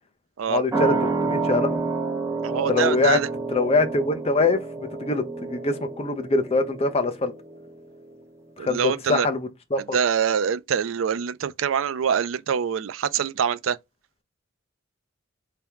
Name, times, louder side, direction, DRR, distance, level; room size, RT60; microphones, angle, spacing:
voice 1, 0.5-1.8 2.5-3.2 3.5-7.3 8.6-9.8, left 3 dB, 30° left, 0.7 m, -24 dB
sound 1, 0.7-7.8 8.1-8.2, right 3 dB, 15° right, 0.9 m, -29 dB
voice 2, 2.4-3.3 8.6-9.3 9.9-13.8, right 7 dB, 80° right, 0.4 m, -24 dB
3.5 x 2.9 x 3.5 m
head